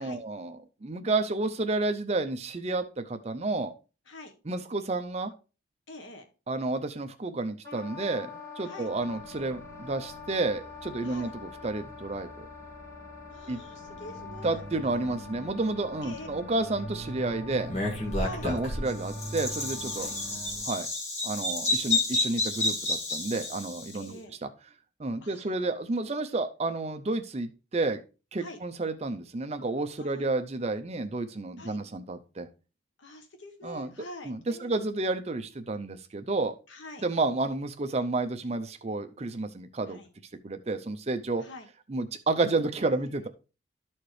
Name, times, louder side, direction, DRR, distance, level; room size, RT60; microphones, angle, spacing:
voice 1, 0.0-3.7 4.5-5.3 6.5-12.5 13.5-13.6 14.4-17.7 18.4-20.1 20.6-20.9 21.2-24.5 25.0-28.0 28.3-32.5 33.6-33.9 34.2-36.6 37.0-40.0 40.4-41.4 41.9-43.3, right 2 dB, 35° right, 9 dB, 0.5 m, -31 dB
voice 2, 5.9-6.2 8.6-8.9 11.0-11.3 13.3-14.6 16.0-16.3 18.2-18.5 20.0-20.2 21.9-22.1 23.9-24.3 25.2-25.7 28.4-28.6 30.0-30.2 31.6-31.8 33.0-34.8 36.7-37.0 39.9-40.1 41.4-41.7 43.0-43.3, left 2 dB, 75° left, 5 dB, 1.1 m, -45 dB
Wind instrument woodwind instrument, 7.6-20.5, left 5 dB, 15° left, 2.5 m, -46 dB
sound 1, 8.9-20.6, right 1 dB, 60° right, 1.0 m, -44 dB
Bird vocalization bird call bird song, 17.7-24.0, left 2 dB, 35° left, 1.7 m, -30 dB
12.5 x 4.3 x 3.2 m, 0.32 s
head